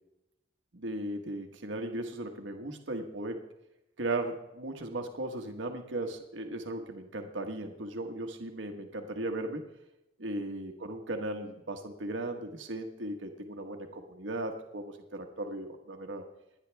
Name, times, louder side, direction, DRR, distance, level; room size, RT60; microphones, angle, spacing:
voice 1, 0.7-3.4 4.0-9.6 10.2-16.2, right 2 dB, 80° right, 4 dB, 1.4 m, -37 dB
27.5 x 10.5 x 3.5 m, 0.93 s
head